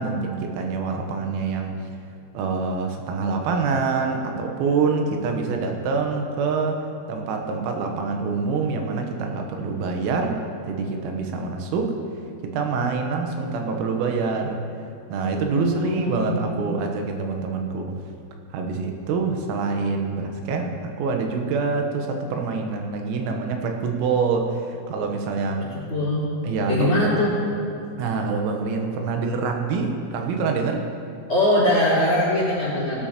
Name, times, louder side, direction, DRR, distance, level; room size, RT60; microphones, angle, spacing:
voice 1, 0.0-1.7 2.4-6.8 7.1-10.4 10.7-11.9 12.5-14.6 15.1-18.0 18.5-25.6 26.4-27.2 28.0-30.8, right 4 dB, 90° right, 3 dB, 3.7 m, -25 dB
voice 2, 15.5-16.6 25.7-26.3 26.7-27.3 31.3-33.1, left 1 dB, 25° left, -8 dB, 3.8 m, -22 dB
18.5 x 12.0 x 2.9 m, 2.6 s
omnidirectional pair, 6.0 m